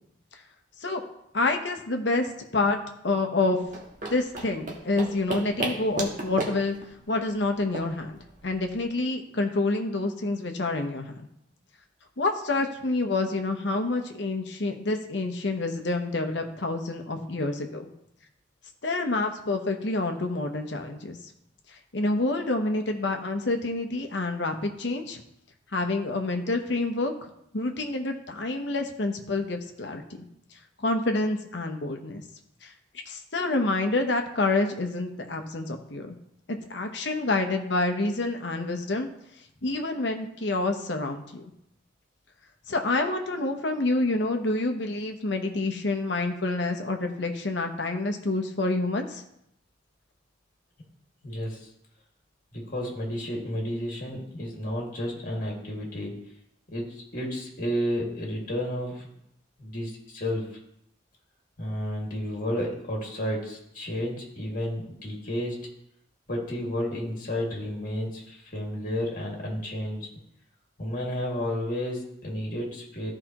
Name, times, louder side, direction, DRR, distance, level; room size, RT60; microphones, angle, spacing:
voice 1, 1.3-2.8 3.0-3.6 4.1-6.7 7.1-8.2 8.4-11.2 12.2-17.9 18.8-21.2 21.9-25.2 25.7-30.0 30.8-32.2 32.6-32.7 33.1-36.2 36.5-39.1 39.6-41.5 42.7-49.2, left 2 dB, 60° left, 5 dB, 1.0 m, -28 dB
sound 1, 3.6-8.8, right 2 dB, 40° right, 1.3 m, -35 dB
voice 2, 51.2-51.7 52.5-56.1 56.7-59.1 59.6-60.5 61.6-65.7 66.3-70.1 70.8-73.1, equal, 45° left, -2 dB, 2.2 m, -31 dB
14.0 x 4.9 x 3.0 m, 0.77 s
head